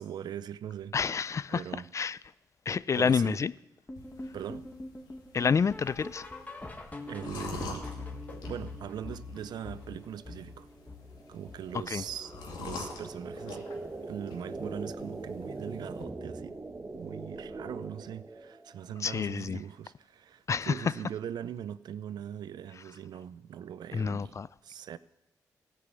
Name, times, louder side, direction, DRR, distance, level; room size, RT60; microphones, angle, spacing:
voice 1, 0.0-1.9 2.9-3.4 4.3-4.7 7.1-7.9 8.5-10.7 11.3-13.7 14.0-16.6 16.9-24.4 24.6-25.0, right 9 dB, 70° right, 0.5 m, -41 dB
voice 2, 0.9-1.6 1.9-2.2 2.7-3.5 5.3-6.3 11.9-12.0 19.0-19.6 20.5-20.7 23.9-24.5, left 6 dB, 45° left, 0.4 m, -28 dB
sound 1, 3.9-13.0 13.3-13.6 13.9-14.0 14.5-14.6 15.1-15.2, left 2 dB, 20° left, 1.8 m, -44 dB
sound 2, 4.0-16.0, left 3 dB, 85° left, 2.3 m, -46 dB
sound 3, 10.0-18.8, right 2 dB, 25° right, 1.2 m, -42 dB
15.0 x 5.6 x 8.2 m
supercardioid pair, 60°, 7 cm